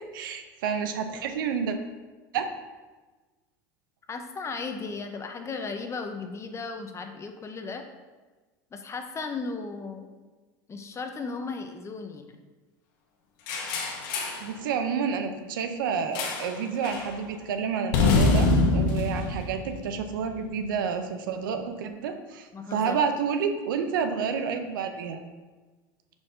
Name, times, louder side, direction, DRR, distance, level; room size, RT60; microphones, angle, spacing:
voice 1, 0.1-1.8 2.3-2.5 14.4-25.2, right 6 dB, 80° right, 7 dB, 0.6 m, -29 dB
voice 2, 4.1-7.8 8.7-10.1 10.7-12.4 22.5-23.0, left 4 dB, 25° left, 6 dB, 0.7 m, -35 dB
sound 1, 13.5-14.5 16.1-16.6 16.8-17.1 17.9-20.3, left 3 dB, 70° left, 1.0 m, -25 dB
4.8 x 4.2 x 4.9 m, 1.3 s
hypercardioid pair, 90°, 11 cm